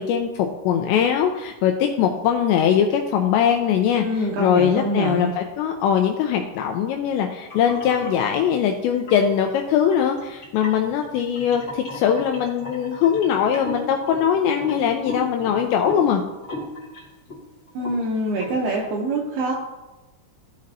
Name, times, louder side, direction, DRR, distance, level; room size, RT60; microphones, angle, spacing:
voice 1, 0.0-16.2, left 8 dB, 85° left, 4 dB, 2.5 m, -21 dB
voice 2, 4.0-5.3 17.7-19.5, right 2 dB, 80° right, -1 dB, 2.3 m, -25 dB
sound 1, 7.5-8.3 8.9-9.4 9.8-17.4 17.7-18.0 18.4-18.6, left 1 dB, 70° left, 1.0 m, -36 dB
14.5 x 5.2 x 2.7 m, 1.1 s
omnidirectional pair, 5.5 m